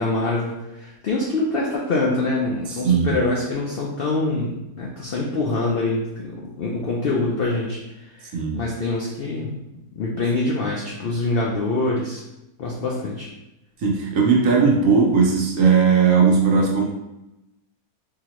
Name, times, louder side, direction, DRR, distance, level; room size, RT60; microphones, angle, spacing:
voice 1, 0.0-7.8 8.2-9.5 9.9-12.2 12.6-13.3, left 2 dB, 75° left, -3 dB, 0.5 m, -25 dB
voice 2, 2.8-3.2 8.3-8.6 13.8-16.8, right 5 dB, 65° right, -1 dB, 1.0 m, -17 dB
3.8 x 2.8 x 3.0 m, 0.92 s
omnidirectional pair, 1.7 m